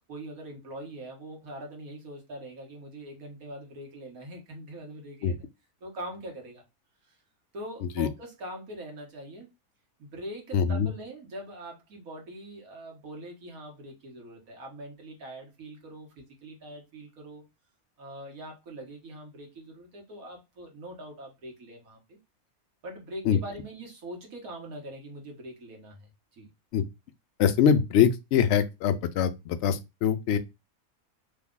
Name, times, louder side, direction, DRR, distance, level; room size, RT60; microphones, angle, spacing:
voice 1, 0.1-5.4 5.8-6.6 7.1-7.2 7.5-9.5 10.0-17.4 18.0-22.2 22.8-26.5, right 1 dB, 75° right, 1.6 m, -43 dB
voice 2, 10.5-10.9 23.2-23.4 26.7-26.9 27.4-30.4, left 8 dB, 65° left, 0.7 m, -23 dB
3.4 x 2.3 x 3.6 m
omnidirectional pair, 1.5 m